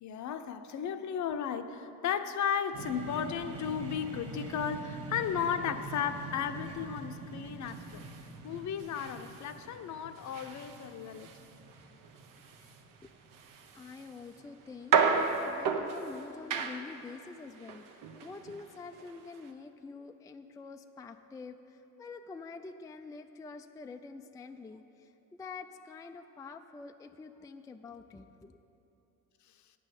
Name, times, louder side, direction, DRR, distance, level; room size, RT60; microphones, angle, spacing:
voice 1, 0.0-8.0 8.4-11.3, left 8 dB, 55° left, 9 dB, 0.7 m, -34 dB
sound 1, 2.7-14.5, right 3 dB, 40° right, 1.2 m, -45 dB
sound 2, 7.6-19.5, right 6 dB, 65° right, 0.9 m, -35 dB
voice 2, 13.7-28.6, left 4 dB, 10° left, 7 dB, 0.3 m, -47 dB
8.9 x 6.2 x 8.2 m, 2.9 s
supercardioid pair, 85°, 35 cm